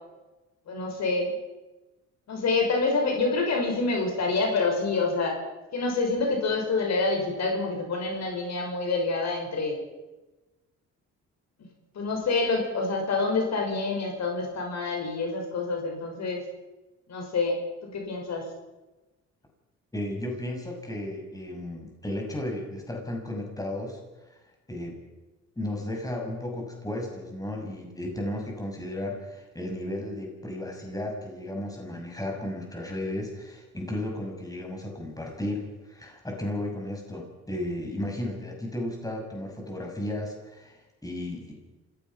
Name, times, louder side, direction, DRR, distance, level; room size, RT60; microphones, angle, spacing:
voice 1, 0.7-1.3 2.3-5.4 5.7-9.8 11.9-16.4 17.1-17.6 17.8-18.4, left 3 dB, 60° left, 2 dB, 6.1 m, -27 dB
voice 2, 19.9-24.0 24.7-25.0 25.6-41.5, left 1 dB, 10° left, 1 dB, 6.8 m, -34 dB
27.5 x 16.5 x 5.9 m, 1.1 s
cardioid pair, 90°, 30 cm